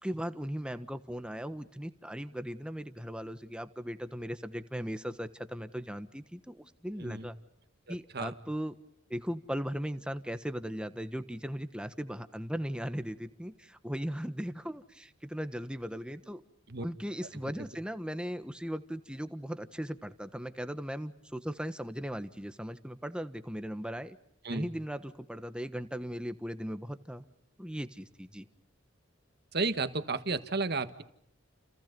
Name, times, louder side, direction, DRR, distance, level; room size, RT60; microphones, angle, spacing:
voice 1, 0.0-7.4 7.9-8.7 9.1-16.4 16.8-24.2 24.5-27.2 27.6-28.5, equal, 5° right, 10 dB, 1.3 m, -38 dB
voice 2, 7.9-8.3 16.7-16.8 24.4-24.7 29.5-31.0, right 3 dB, 55° right, 10 dB, 1.7 m, -33 dB
30.0 x 29.5 x 5.4 m, 0.72 s
head